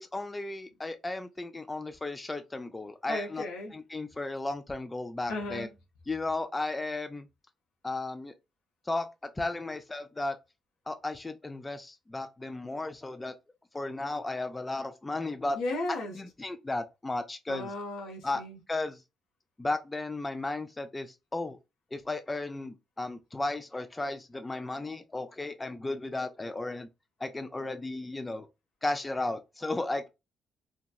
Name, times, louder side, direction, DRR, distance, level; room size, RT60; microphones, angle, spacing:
voice 1, 0.1-3.4 3.7-5.7 6.1-7.3 7.8-8.3 8.9-9.1 9.4-10.4 10.9-13.3 13.7-15.6 15.9-17.7 18.2-18.4 18.7-19.0 19.6-21.6 21.9-26.9 27.2-28.5 28.8-30.1, left 2 dB, 20° left, 0.4 m, -34 dB
voice 2, 3.1-3.8 5.3-5.8 15.5-16.1 17.5-18.6, left 2 dB, 85° left, 0.9 m, -35 dB
2.9 x 2.2 x 2.3 m
cardioid pair, 90°, 0 cm